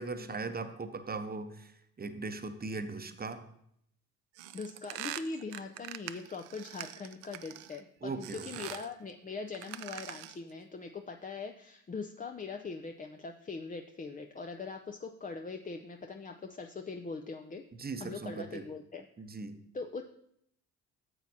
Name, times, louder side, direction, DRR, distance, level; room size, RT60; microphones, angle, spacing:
voice 1, 0.0-1.7 2.0-3.4 8.0-8.6 17.7-18.7 19.2-19.6, right 3 dB, 20° right, 9 dB, 0.8 m, -39 dB
sound 1, 4.4-7.8 8.2-8.9 9.5-10.5, right 14 dB, 75° right, 0.6 m, -44 dB
voice 2, 4.5-17.6 18.0-19.0 19.7-20.0, left 4 dB, 20° left, 4 dB, 0.5 m, -41 dB
11.0 x 7.0 x 2.7 m, 0.72 s
hypercardioid pair, 50°, 44 cm